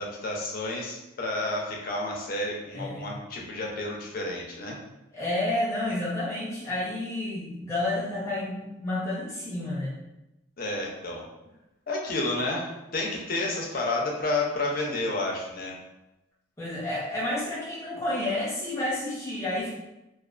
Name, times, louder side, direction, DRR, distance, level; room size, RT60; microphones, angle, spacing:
voice 1, 0.0-4.8 10.6-11.3 11.9-15.8, left 2 dB, 45° left, -1 dB, 0.5 m, -30 dB
voice 2, 2.7-3.1 5.1-10.0 16.6-19.7, left 1 dB, 15° left, -8 dB, 0.7 m, -30 dB
2.3 x 2.3 x 2.4 m, 0.94 s
head